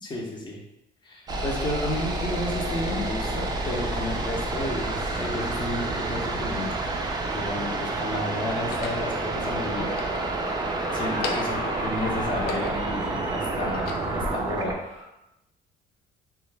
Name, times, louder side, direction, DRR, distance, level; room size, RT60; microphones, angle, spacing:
voice 1, 0.0-0.6 1.0-6.8 7.3-9.9 10.3-10.7 10.9-14.7, left 1 dB, 25° left, -1 dB, 0.6 m, -32 dB
sound 1, 1.3-14.8, right 2 dB, 25° right, 0.3 m, -29 dB
sound 2, 7.3-7.8 8.6-9.1 9.8-10.7 11.1-11.7 12.2-13.0 13.5-14.3, left 4 dB, 65° left, 0.4 m, -36 dB
sound 3, 9.7-15.0, left 1 dB, 50° left, 0.9 m, -37 dB
2.3 x 2.0 x 3.2 m, 0.91 s
cardioid pair, 110°, 17 cm